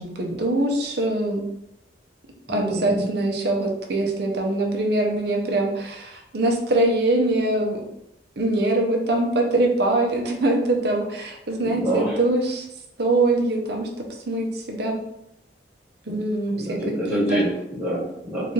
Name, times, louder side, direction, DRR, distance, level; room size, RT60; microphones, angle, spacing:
voice 1, 0.0-1.4 2.5-7.8 8.4-12.7 13.0-13.9 14.3-15.0 16.0-16.8 17.0-17.4 18.4-18.5, right 2 dB, 65° right, 1 dB, 0.7 m, -23 dB
voice 2, 2.5-3.0 11.6-12.1 16.1-16.2 16.5-18.5, equal, 5° right, -9 dB, 1.4 m, -26 dB
3.9 x 2.4 x 3.2 m, 0.81 s
head